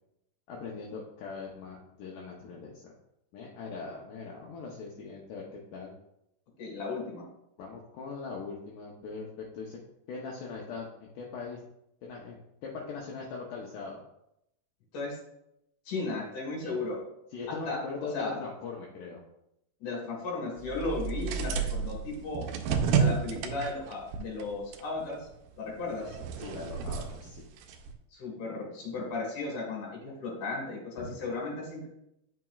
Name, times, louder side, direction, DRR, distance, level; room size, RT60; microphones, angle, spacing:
voice 1, 0.5-2.9 3.3-5.9 7.6-9.8 10.1-11.6 12.0-12.4 12.6-14.0 16.6-17.0 17.3-19.2 26.4-27.5 31.0-31.1, left 4 dB, 75° left, -2 dB, 1.9 m, -41 dB
voice 2, 6.6-7.2 14.9-15.2 15.9-17.0 17.5-17.8 18.1-18.4 19.8-22.4 23.0-25.3 25.6-26.2 28.1-31.9, left 3 dB, 60° left, -1 dB, 3.0 m, -35 dB
sound 1, 20.6-25.5 25.8-27.9, right 6 dB, 85° right, 2.2 m, -31 dB
9.1 x 6.0 x 2.4 m, 0.80 s
omnidirectional pair, 4.8 m